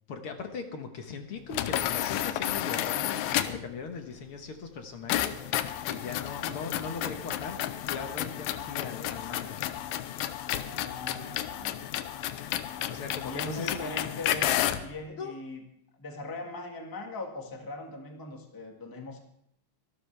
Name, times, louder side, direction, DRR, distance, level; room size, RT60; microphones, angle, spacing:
voice 1, 0.1-9.7 12.9-14.0 15.2-15.3, left 5 dB, 60° left, 5 dB, 1.5 m, -39 dB
sound 1, 1.5-3.7 5.1-14.9, left 12 dB, 90° left, 2.5 m, -31 dB
voice 2, 10.6-11.8 13.2-15.6 16.0-19.2, left 2 dB, 15° left, 2 dB, 0.8 m, -40 dB
24.5 x 12.0 x 3.4 m, 0.72 s
omnidirectional pair, 4.0 m